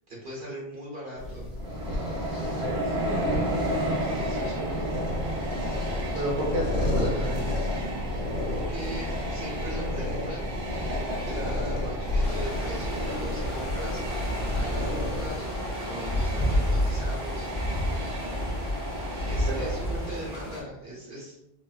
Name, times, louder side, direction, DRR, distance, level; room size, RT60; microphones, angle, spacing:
voice 1, 0.1-1.5 3.9-4.9 6.5-6.6 8.5-10.4 11.2-17.5 19.2-21.4, right 1 dB, 70° right, -4 dB, 1.3 m, -39 dB
sound 1, 1.2-15.3, left 1 dB, 65° left, 1.2 m, -32 dB
Train, 1.6-20.5, right 1 dB, 85° right, 1.0 m, -33 dB
voice 2, 2.4-3.4 6.1-7.6 19.5-19.9, right 1 dB, 40° right, -4 dB, 0.8 m, -32 dB
sound 2, 12.2-20.6, equal, 30° left, 0.9 m, -30 dB
4.1 x 2.1 x 2.3 m, 0.86 s
omnidirectional pair, 1.0 m